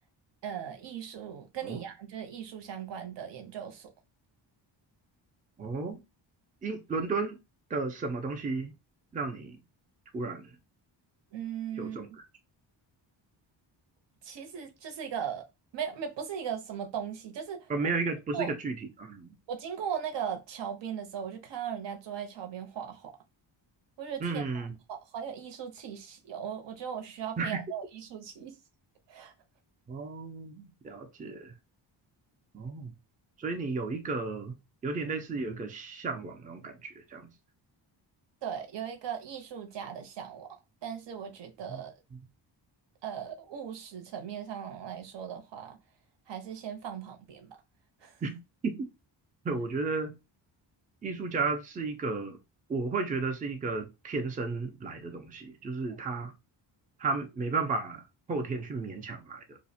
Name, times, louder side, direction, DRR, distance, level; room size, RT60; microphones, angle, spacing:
voice 1, 0.4-3.9 11.3-12.0 14.2-15.5 15.7-17.7 18.3-18.5 19.5-23.1 24.0-24.4 24.9-28.6 29.1-29.3 38.4-40.5 40.8-41.9 43.0-45.8 46.3-47.6 48.0-48.2 55.9-56.0, right 8 dB, 70° right, 0.7 m, -38 dB
voice 2, 5.6-6.0 6.6-7.4 7.7-8.7 9.1-9.6 10.1-10.6 11.8-12.2 17.7-19.4 24.2-24.8 27.4-27.7 29.9-31.5 32.5-32.9 33.4-34.6 34.8-37.3 41.7-41.8 42.1-42.2 48.2-48.3 48.6-48.9 49.4-50.1 51.0-52.4 52.7-56.3 57.0-58.0 58.3-59.6, right 4 dB, 20° right, 0.4 m, -33 dB
2.4 x 2.0 x 2.7 m
wide cardioid pair, 135°, 45 cm